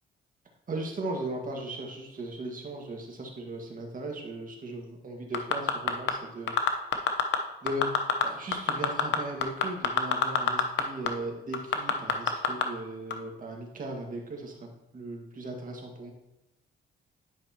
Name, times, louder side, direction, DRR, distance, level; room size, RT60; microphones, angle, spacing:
voice 1, 0.7-6.5 7.6-7.9 8.2-14.7 14.9-16.1, right 2 dB, 45° right, 1 dB, 1.7 m, -37 dB
sound 1, 5.3-6.1 6.5-7.4 7.7-8.2 8.5-10.8 11.1-11.2 11.5-12.6 13.1-13.2, left 8 dB, 65° left, 0.8 m, -24 dB
10.5 x 5.3 x 2.9 m, 0.92 s
cardioid pair, 90°, 20 cm